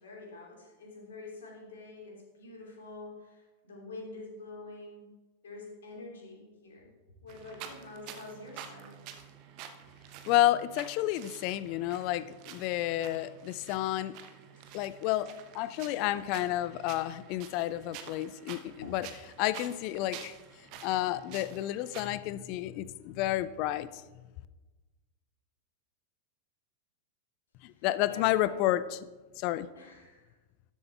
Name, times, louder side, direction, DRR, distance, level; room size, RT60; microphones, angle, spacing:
voice 1, 0.0-5.0 5.4-6.9 7.2-9.0 14.6-14.8 16.0-16.1 18.8-18.9 27.7-28.6 29.7-30.3, left 3 dB, 65° left, -1 dB, 2.8 m, -47 dB
sound 1, 7.3-22.1, right 9 dB, 45° right, 1.0 m, -49 dB
voice 2, 10.3-14.1 14.7-15.3 15.5-19.1 19.4-20.3 20.8-23.9 27.6-29.0 29.4-29.7, left 14 dB, 45° left, 15 dB, 0.5 m, -30 dB
12.5 x 7.7 x 3.4 m, 1.2 s
figure-of-eight pair, 90°, 0 cm